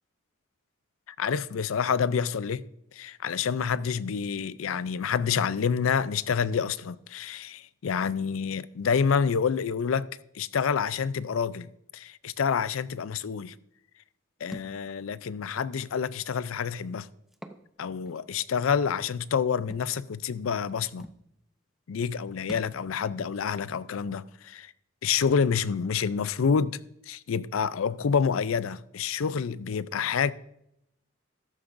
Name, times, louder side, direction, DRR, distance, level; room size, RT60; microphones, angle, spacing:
voice 1, 1.2-2.6 2.9-10.1 10.3-13.5 14.4-17.1 17.8-21.1 21.9-24.7 25.0-26.8 27.1-30.3, left 6 dB, 80° left, 0.4 m, -28 dB
Thump thud, 14.5-14.8 15.8-15.9 17.3-17.6 18.1-18.2 19.7-19.9 20.7-20.8 21.0-21.2 22.5-22.8, equal, ahead, 0.6 m, -43 dB
14.0 x 11.5 x 2.6 m
head